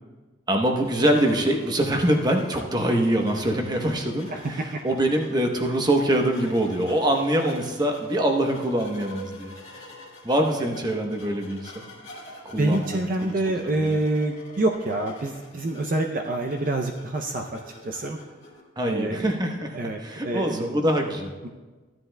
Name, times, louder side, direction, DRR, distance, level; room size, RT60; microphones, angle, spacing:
voice 1, 0.5-9.5 10.2-11.9 12.4-13.3 13.8-14.0 18.8-21.3, right 1 dB, 20° right, 2 dB, 0.9 m, -24 dB
sound 1, 0.8-18.6, left 1 dB, 35° left, 1.8 m, -46 dB
voice 2, 4.3-4.8 12.6-18.2 18.9-19.3 19.7-20.7 21.4-21.5, right 2 dB, 45° right, 3 dB, 0.5 m, -27 dB
15.0 x 10.5 x 2.2 m, 1.3 s
head